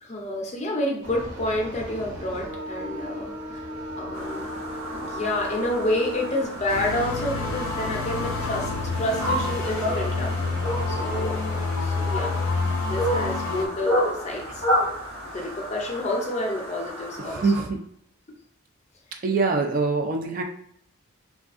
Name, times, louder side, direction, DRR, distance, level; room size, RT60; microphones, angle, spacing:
voice 1, 0.0-3.3 4.0-4.4 4.9-10.3 10.9-12.3 12.9-14.6 15.3-17.4 18.3-18.4, left 1 dB, 35° left, 1 dB, 0.5 m, -29 dB
sound 1, 1.0-11.0, equal, 65° right, 0.7 m, -37 dB
sound 2, 4.1-17.6, equal, 85° right, 1.2 m, -31 dB
sound 3, 6.7-13.7, left 4 dB, 85° left, 0.5 m, -28 dB
voice 2, 17.2-17.8 19.2-20.4, right 4 dB, 40° right, 2 dB, 0.3 m, -24 dB
3.4 x 2.3 x 2.4 m, 0.69 s
head